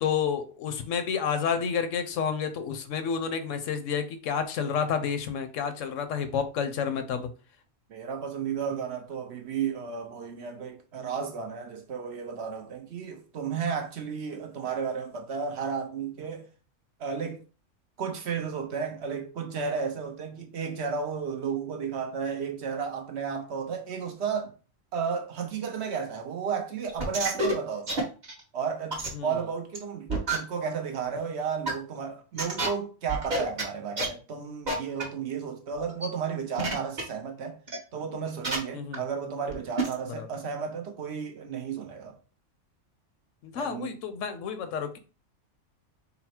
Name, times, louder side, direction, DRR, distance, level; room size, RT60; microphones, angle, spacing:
voice 1, 0.0-7.3 29.1-29.3 38.7-39.0 40.2-40.3 43.4-45.0, left 7 dB, 80° left, 1.0 m, -30 dB
voice 2, 7.9-16.5 17.0-17.4 18.0-24.5 24.9-28.1 28.5-37.6 37.9-42.2 43.6-44.0, right 6 dB, 65° right, 0.9 m, -33 dB
sound 1, 26.9-27.5 27.9-28.4 28.9-29.1 29.7-29.8 30.1-30.4 31.1-31.2 31.7-31.8 32.4-32.7 33.1-33.6 34.0-34.1 34.7-34.8 35.0-35.1 35.7-36.1 36.6-37.0 37.7-37.8 38.4-38.6 38.9-39.0 39.5-39.6 39.8-39.9, right 2 dB, 40° right, 1.1 m, -28 dB
4.0 x 2.0 x 4.2 m
omnidirectional pair, 1.3 m